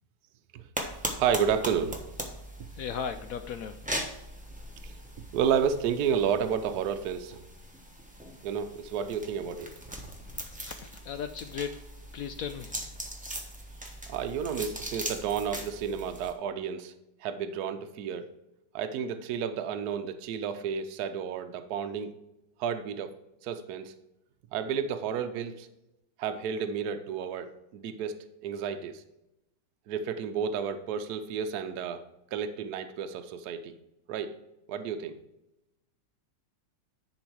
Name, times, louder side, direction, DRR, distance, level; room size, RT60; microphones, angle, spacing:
sound 1, 0.7-16.3, right 1 dB, 5° right, 0.8 m, -40 dB
voice 1, 1.2-2.0 4.8-4.9 5.3-7.4 8.4-9.7 14.1-16.9 17.2-18.3 18.7-22.1 22.6-23.1 23.4-23.9 24.5-25.7 26.2-29.0 29.9-32.0 32.3-33.8 34.1-34.4 34.7-35.2, right 7 dB, 65° right, 8 dB, 1.1 m, -31 dB
voice 2, 2.8-3.8 10.7-11.7 12.1-12.8, left 7 dB, 75° left, 9 dB, 0.8 m, -36 dB
10.5 x 4.4 x 4.6 m, 0.90 s
omnidirectional pair, 2.0 m